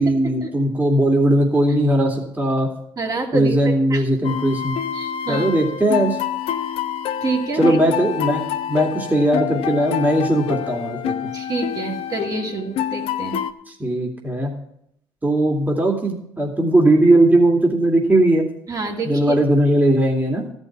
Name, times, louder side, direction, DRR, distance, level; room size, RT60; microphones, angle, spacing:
voice 1, 0.0-2.7 3.3-4.8 5.3-6.2 7.6-11.3 13.7-14.5 15.2-18.5 19.0-20.4, right 1 dB, 15° right, 0 dB, 2.5 m, -18 dB
voice 2, 3.0-3.6 3.9-4.0 4.9-5.5 7.2-7.8 11.3-13.4 18.7-19.4, right 3 dB, 40° right, -1 dB, 2.9 m, -27 dB
sound 1, 4.2-13.5, left 9 dB, 65° left, 0.7 m, -27 dB
13.5 x 5.4 x 8.5 m, 0.75 s
hypercardioid pair, 60°, 10 cm